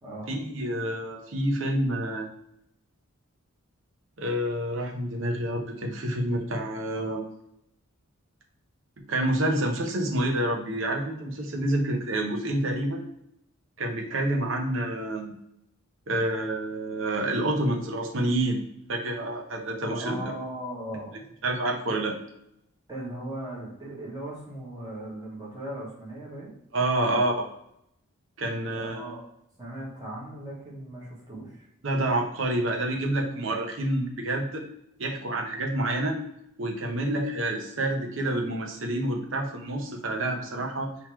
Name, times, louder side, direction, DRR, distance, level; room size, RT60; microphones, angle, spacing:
voice 1, 0.3-2.3 4.2-7.2 9.0-13.0 13.8-15.3 16.1-18.6 18.9-20.3 21.4-22.2 26.7-27.3 28.4-29.1 31.8-34.6 35.0-36.2 36.6-40.9, right 1 dB, 65° right, 1 dB, 0.8 m, -28 dB
voice 2, 19.9-21.2 22.9-26.5 27.0-27.2 28.7-29.2 29.6-31.7, right 1 dB, 20° right, -7 dB, 1.6 m, -38 dB
4.0 x 3.0 x 4.5 m, 0.78 s
head